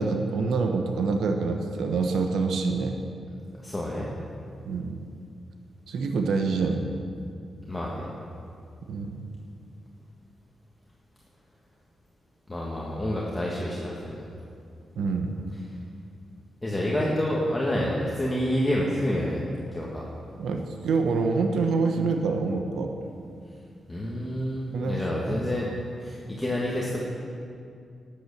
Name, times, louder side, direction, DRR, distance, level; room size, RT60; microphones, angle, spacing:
voice 1, 0.0-3.0 4.6-5.0 5.9-6.9 8.9-9.2 15.0-15.3 20.4-22.9 24.7-25.4, right 4 dB, 85° right, 4 dB, 1.0 m, -26 dB
voice 2, 3.6-4.1 7.7-8.1 12.5-14.2 16.6-19.4 19.7-20.0 23.9-25.7 26.0-27.0, left 1 dB, 10° left, -4 dB, 1.4 m, -28 dB
12.5 x 8.9 x 6.8 m, 2.4 s
wide cardioid pair, 135°, 0 cm